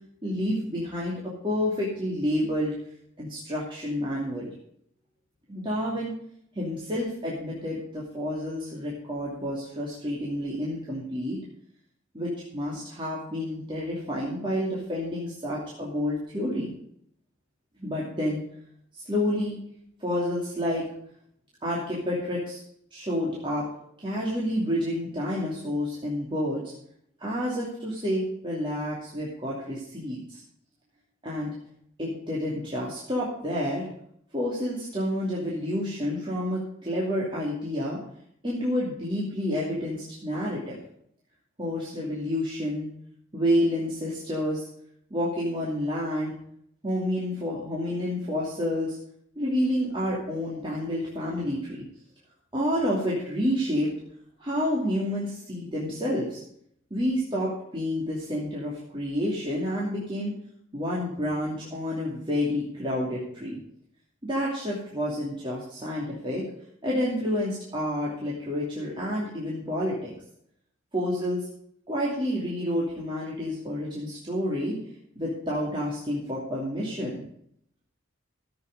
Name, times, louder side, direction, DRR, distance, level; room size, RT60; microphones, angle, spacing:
voice 1, 0.2-2.7 3.2-4.5 5.5-6.1 6.5-11.4 12.1-16.7 17.8-18.4 18.9-19.6 20.0-20.8 21.6-22.6 22.9-23.6 24.0-26.7 27.2-30.4 31.2-31.5 32.0-33.9 34.3-38.0 38.4-40.8 41.6-42.9 43.3-44.7 45.1-46.3 46.8-49.0 49.4-51.8 52.5-53.9 54.4-56.4 56.9-60.3 60.7-63.6 64.2-66.4 66.8-70.1 70.9-71.5 71.9-74.8 75.1-77.2, equal, 25° right, -6 dB, 2.7 m, -29 dB
13.5 x 8.1 x 5.3 m, 0.69 s
head